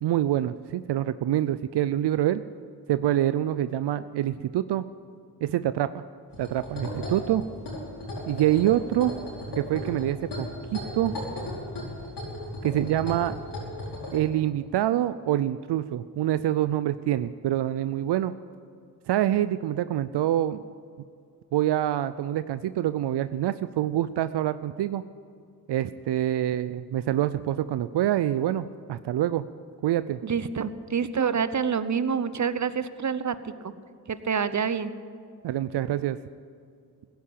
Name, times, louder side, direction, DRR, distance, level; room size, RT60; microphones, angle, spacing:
voice 1, 0.0-2.4 2.9-4.8 5.4-6.0 6.4-7.4 8.3-9.1 9.6-10.5 10.7-11.1 12.6-13.4 14.1-18.3 19.1-20.6 21.5-25.0 25.7-29.5 29.8-30.2 35.4-36.2, right 12 dB, 85° right, 13 dB, 0.5 m, -26 dB
sound 1, 6.3-14.2, left 1 dB, 85° left, 4.9 m, -36 dB
voice 2, 30.2-33.4 33.6-33.7 34.1-34.9, right 6 dB, 45° right, 13 dB, 0.9 m, -27 dB
15.5 x 10.5 x 8.7 m, 2.3 s
cardioid pair, 50°, 40 cm